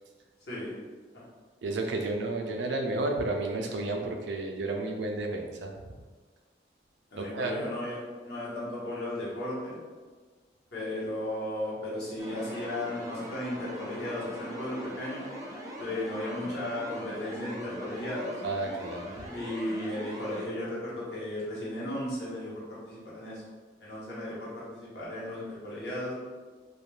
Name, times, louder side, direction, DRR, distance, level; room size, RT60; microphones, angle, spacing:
voice 1, 1.6-6.0 7.2-7.5 18.4-19.3, right 2 dB, 80° right, 3 dB, 0.4 m, -32 dB
voice 2, 7.1-8.0 8.2-9.8 10.7-15.3 15.8-18.3 19.3-23.4 23.8-26.1, left 1 dB, 70° left, -8 dB, 1.0 m, -35 dB
sound 1, 12.2-20.5, equal, 20° right, 0.4 m, -42 dB
2.4 x 2.2 x 3.2 m, 1.4 s
head